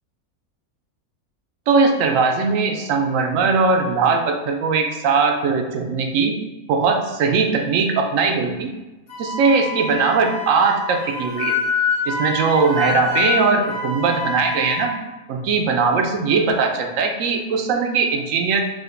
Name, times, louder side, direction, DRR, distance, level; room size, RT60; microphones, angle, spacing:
voice 1, 1.7-6.4 6.7-8.7 9.2-11.6 12.1-14.9 15.3-18.6, right 4 dB, 70° right, 3 dB, 1.0 m, -20 dB
Wind instrument woodwind instrument, 9.1-14.9, left 5 dB, 85° left, 1.4 m, -26 dB
5.1 x 2.4 x 3.8 m, 1.1 s
omnidirectional pair, 1.5 m